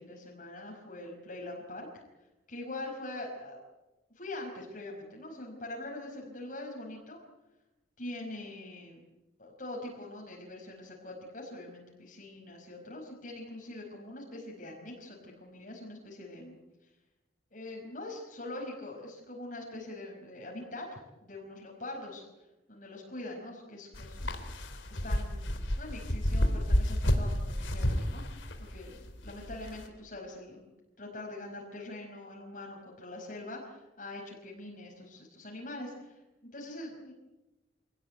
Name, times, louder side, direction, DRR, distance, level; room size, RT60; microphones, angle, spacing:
voice 1, 0.0-2.0 2.5-3.6 4.1-7.2 8.0-9.0 9.4-16.6 16.8-16.9 17.5-22.2 22.7-24.5 24.9-30.6 31.0-36.2 36.5-37.1, left 2 dB, 45° left, -2 dB, 5.1 m, -43 dB
sound 1, 23.9-29.9, equal, 90° left, 3.4 m, -30 dB
27.0 x 18.5 x 9.4 m, 1.1 s
head